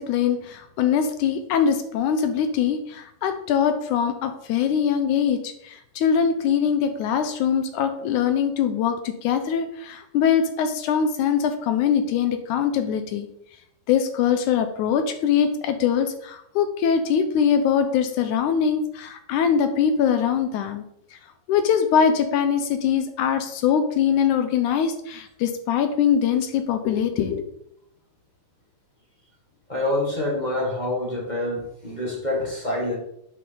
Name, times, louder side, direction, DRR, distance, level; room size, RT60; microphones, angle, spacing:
voice 1, 0.0-13.3 13.9-20.8 21.5-27.4, left 7 dB, 75° left, 8 dB, 2.0 m, -22 dB
voice 2, 29.7-33.0, left 1 dB, 25° left, -3 dB, 0.9 m, -26 dB
10.5 x 6.3 x 3.9 m, 0.74 s
omnidirectional pair, 3.9 m